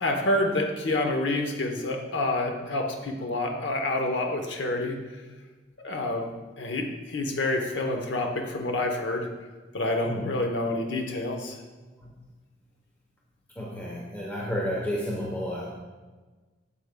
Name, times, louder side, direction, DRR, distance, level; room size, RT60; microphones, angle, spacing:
voice 1, 0.0-5.0 5.8-6.3 6.6-9.3 9.7-11.6, left 2 dB, 80° left, 3 dB, 0.9 m, -28 dB
voice 2, 13.6-15.8, equal, 10° left, -4 dB, 0.8 m, -31 dB
8.1 x 7.3 x 2.2 m, 1.3 s
head